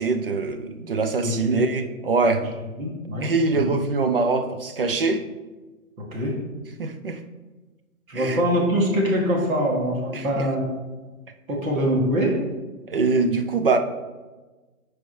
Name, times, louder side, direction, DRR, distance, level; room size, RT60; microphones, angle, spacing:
voice 1, 0.0-2.4 3.2-5.2 6.8-7.2 8.1-8.4 10.1-10.5 12.9-13.8, right 4 dB, 40° right, 7 dB, 0.5 m, -23 dB
voice 2, 1.2-1.6 2.8-3.2 3.5-3.7 6.1-6.3 8.1-10.6 11.5-12.4, equal, 70° right, -2 dB, 2.4 m, -23 dB
9.4 x 4.6 x 3.2 m, 1.2 s
hypercardioid pair, 165°, 44 cm